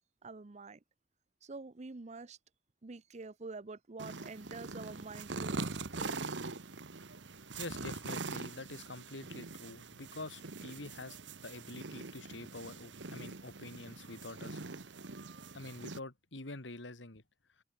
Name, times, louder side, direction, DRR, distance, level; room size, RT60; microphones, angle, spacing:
voice 1, 0.2-0.8 1.4-2.4 2.8-6.2, right 3 dB, 40° right, 0.7 m, -47 dB
sound 1, 4.0-16.0, right 3 dB, 80° right, 1.4 m, -43 dB
voice 2, 7.6-14.6 15.5-17.2, left 2 dB, 90° left, 2.4 m, -46 dB
head